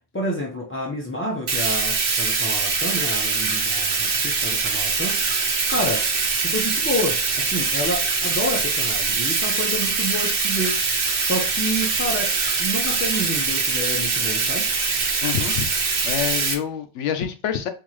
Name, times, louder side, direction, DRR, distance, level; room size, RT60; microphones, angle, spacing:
voice 1, 0.1-5.2 5.7-6.1 6.3-10.8 11.2-14.7, equal, 20° left, -3 dB, 0.3 m, -29 dB
Bathtub (filling or washing), 1.5-16.5, right 4 dB, 55° right, 0.9 m, -23 dB
voice 2, 15.2-15.7 16.0-17.7, left 9 dB, 80° left, 9 dB, 0.9 m, -26 dB
3.7 x 2.7 x 3.1 m, 0.36 s
omnidirectional pair, 1.2 m